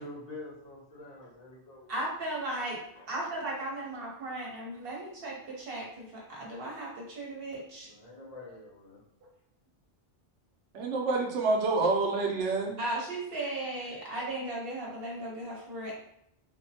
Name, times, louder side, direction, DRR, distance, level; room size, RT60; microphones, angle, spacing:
voice 1, 0.0-1.9 3.0-3.1 3.6-3.7 4.3-4.4 7.8-9.0, left 2 dB, 40° left, -6 dB, 0.9 m, -46 dB
voice 2, 1.9-2.8 3.1-7.9 12.8-15.9, right 1 dB, 55° right, -4 dB, 1.1 m, -36 dB
voice 3, 10.7-12.8, right 3 dB, 85° right, 1 dB, 1.0 m, -27 dB
3.7 x 2.1 x 2.7 m, 0.74 s
omnidirectional pair, 1.2 m